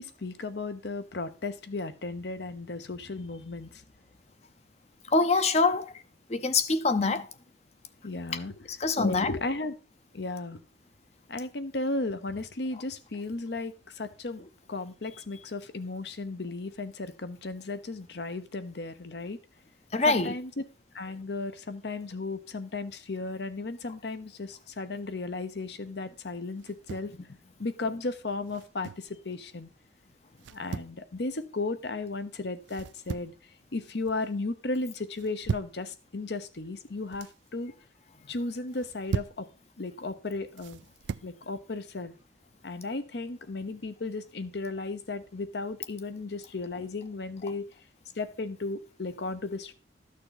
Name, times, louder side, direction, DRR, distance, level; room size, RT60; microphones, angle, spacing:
voice 1, 0.0-3.8 8.0-8.7 9.0-9.7 10.1-10.6 11.3-14.4 14.7-19.4 20.1-20.5 20.9-27.1 27.6-29.7 30.5-33.3 33.7-37.7 38.3-39.5 39.8-40.8 41.2-42.1 42.6-47.7 48.2-49.7, left 3 dB, 65° left, 0.9 m, -35 dB
voice 2, 5.1-5.9 6.3-7.3 8.7-9.3 19.9-20.3, left 3 dB, 35° left, 0.6 m, -24 dB
sound 1, 26.6-27.2 28.5-29.1 30.4-31.0 32.7-33.4 33.8-34.3 35.1-35.8 36.8-37.4 38.7-39.4 40.6-41.3, right 5 dB, 85° right, 0.4 m, -37 dB
12.5 x 6.5 x 4.0 m
head